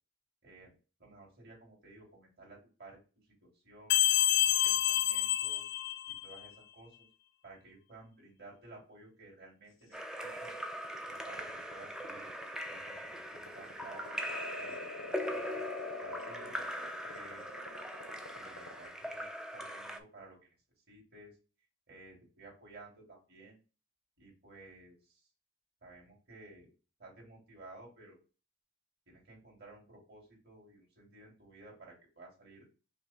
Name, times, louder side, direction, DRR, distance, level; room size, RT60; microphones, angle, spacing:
voice 1, 0.4-0.7 1.0-4.1 4.6-5.7 6.1-7.1 7.4-10.5 11.1-12.3 12.7-15.6 16.0-17.4 18.3-19.3 19.5-20.5 20.9-21.4 21.9-23.6 24.2-25.3 25.8-26.7 27.0-28.2 29.1-32.7, right 2 dB, 55° right, -2 dB, 2.6 m, -55 dB
sound 1, 3.9-6.5, left 13 dB, 65° left, 0.4 m, -28 dB
sound 2, 9.9-18.9, left 3 dB, 80° left, 0.9 m, -46 dB
Splash splatter / Drip / Trickle dribble, 9.9-20.0, equal, 5° right, 0.4 m, -41 dB
5.4 x 2.1 x 4.1 m, 0.34 s
head